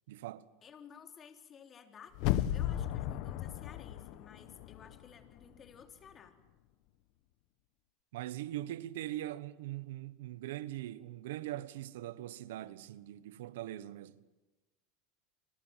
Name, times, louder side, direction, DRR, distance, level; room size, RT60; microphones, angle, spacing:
voice 1, 0.1-0.5 8.1-14.3, right 14 dB, 85° right, 1.2 m, -41 dB
voice 2, 0.6-6.4, left 7 dB, 30° left, 3.8 m, -54 dB
sound 1, 2.1-5.1 5.4-5.5, left 13 dB, 65° left, 1.4 m, -35 dB
29.5 x 25.0 x 7.5 m
supercardioid pair, 120°, 0 cm